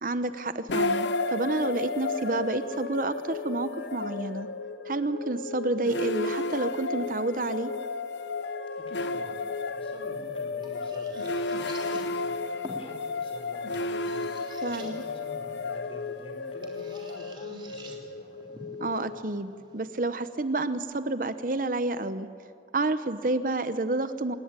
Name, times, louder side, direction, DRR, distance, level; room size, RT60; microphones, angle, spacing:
voice 1, 0.0-4.5 4.9-7.7 14.6-15.0 18.8-22.3 22.7-24.3, right 2 dB, 50° right, 12 dB, 0.9 m, -29 dB
sound 1, 0.7-19.8, left 3 dB, 90° left, 0.9 m, -33 dB
voice 2, 8.8-18.5, left 1 dB, 30° left, 3 dB, 4.4 m, -48 dB
sound 2, 9.8-20.7, right 2 dB, 25° right, 3.3 m, -50 dB
26.5 x 20.5 x 9.0 m, 2.4 s
head